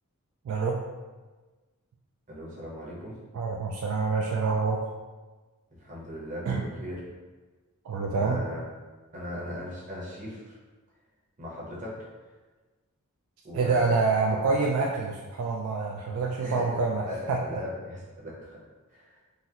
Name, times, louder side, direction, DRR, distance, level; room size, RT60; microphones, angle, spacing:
voice 1, 0.5-0.8 3.3-4.8 6.5-6.6 7.9-8.4 13.5-17.4, right 4 dB, 65° right, 0 dB, 0.3 m, -27 dB
voice 2, 2.3-3.1 5.7-7.0 8.1-8.6 9.1-10.6 11.4-12.0 13.4-14.0 14.3-14.7 16.4-16.8 17.0-18.6 18.9-19.2, equal, 35° right, -5 dB, 0.9 m, -38 dB
3.9 x 2.0 x 2.8 m, 1.3 s
head